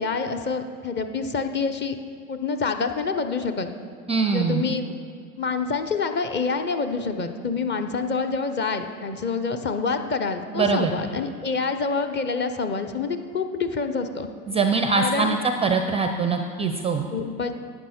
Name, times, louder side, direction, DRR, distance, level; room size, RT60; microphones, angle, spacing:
voice 1, 0.0-2.0 2.3-3.7 4.3-4.9 5.4-14.3 14.9-15.4 17.1-17.5, left 4 dB, 25° left, 7 dB, 0.8 m, -27 dB
voice 2, 4.1-4.6 10.6-10.9 14.5-17.1, right 4 dB, 15° right, 6 dB, 0.5 m, -23 dB
11.5 x 8.6 x 4.4 m, 2.2 s
hypercardioid pair, 95°, 44 cm